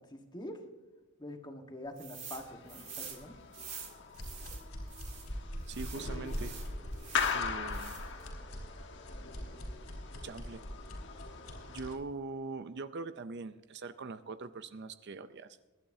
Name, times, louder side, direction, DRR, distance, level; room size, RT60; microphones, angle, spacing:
voice 1, 0.1-0.6 1.2-3.4, left 1 dB, 20° left, 4 dB, 1.5 m, -45 dB
sound 1, 2.0-2.4 2.7-5.3 5.7-7.4 7.7-8.2, right 6 dB, 30° right, 2.6 m, -47 dB
sound 2, 2.3-12.0, left 6 dB, 55° left, 1.3 m, -41 dB
sound 3, 4.1-11.9, equal, 85° left, 5.0 m, -42 dB
voice 2, 5.7-6.5 7.3-8.1 10.2-10.6 11.7-15.6, right 3 dB, 50° right, 12 dB, 0.5 m, -42 dB
23.0 x 11.5 x 2.8 m, 1.2 s
head